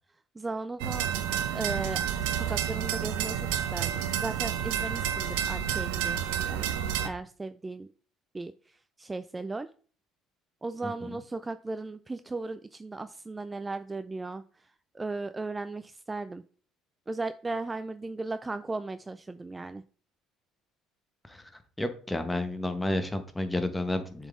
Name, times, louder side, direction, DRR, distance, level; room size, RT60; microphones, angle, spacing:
voice 1, 0.4-1.1 1.5-6.7 7.0-7.9 8.3-9.7 10.6-14.4 14.9-16.4 17.1-19.8, right 3 dB, 20° right, 12 dB, 0.3 m, -36 dB
sound 1, 0.8-7.1, right 9 dB, 85° right, 0.6 m, -30 dB
voice 2, 10.8-11.2 21.3-21.5 21.8-24.3, left 1 dB, 10° left, 8 dB, 1.0 m, -31 dB
7.1 x 4.0 x 3.6 m, 0.43 s
supercardioid pair, 85°, 0 cm